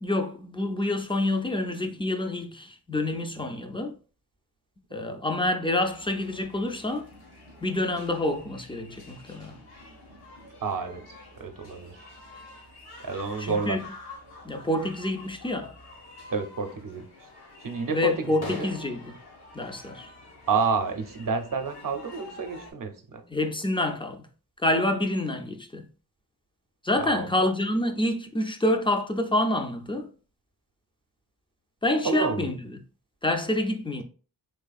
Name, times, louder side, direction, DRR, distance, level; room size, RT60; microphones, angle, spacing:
voice 1, 0.0-4.0 4.9-7.1 7.6-9.6 13.4-13.8 14.4-15.7 17.9-19.1 19.5-20.1 23.3-24.2 24.6-25.9 26.8-30.1 31.8-32.6 33.2-34.0, left 1 dB, 15° left, 0.4 m, -27 dB
sound 1, 5.7-22.7, left 2 dB, 85° left, 1.5 m, -46 dB
voice 2, 10.6-12.0 13.0-13.8 16.3-17.1 17.6-18.7 20.5-23.2 27.0-27.3 32.0-32.5, right 5 dB, 55° right, 0.7 m, -30 dB
3.6 x 3.3 x 2.3 m
wide cardioid pair, 100°, 38 cm